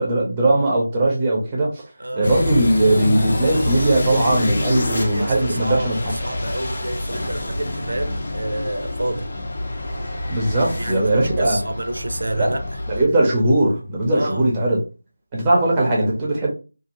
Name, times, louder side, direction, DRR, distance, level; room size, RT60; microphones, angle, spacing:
voice 1, 0.0-1.8 2.1-6.0 10.3-11.6 12.3-12.5 12.9-14.8 15.3-16.5, right 1 dB, 15° right, 0.7 m, -19 dB
voice 2, 2.0-2.3 4.7-9.3 10.6-12.6 13.0-13.1 14.1-14.5, right 1 dB, 75° right, 0.6 m, -29 dB
sound 1, 2.2-13.0, left 1 dB, 40° left, 0.7 m, -27 dB
2.5 x 2.4 x 2.9 m
figure-of-eight pair, 170°, 0 cm